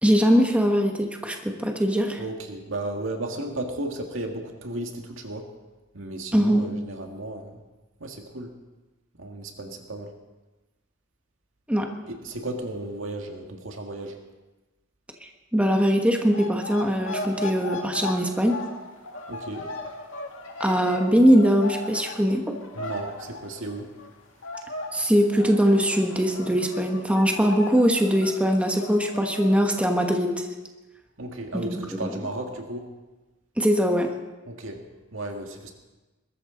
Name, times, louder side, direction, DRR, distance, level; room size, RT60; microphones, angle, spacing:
voice 1, 0.0-2.2 6.3-6.7 11.7-11.9 15.5-18.6 20.6-22.6 24.9-30.5 31.5-32.1 33.6-34.1, equal, 5° right, 3 dB, 1.2 m, -21 dB
voice 2, 2.2-5.5 5.9-7.6 8.0-8.5 9.2-10.1 12.1-14.2 19.3-19.7 22.8-23.9 31.2-32.9 34.5-34.8 35.1-35.7, right 2 dB, 85° right, 3 dB, 2.0 m, -34 dB
sound 1, 16.3-24.2 24.4-29.9, left 2 dB, 80° left, 2.2 m, -37 dB
21.0 x 13.5 x 3.9 m, 1.1 s
head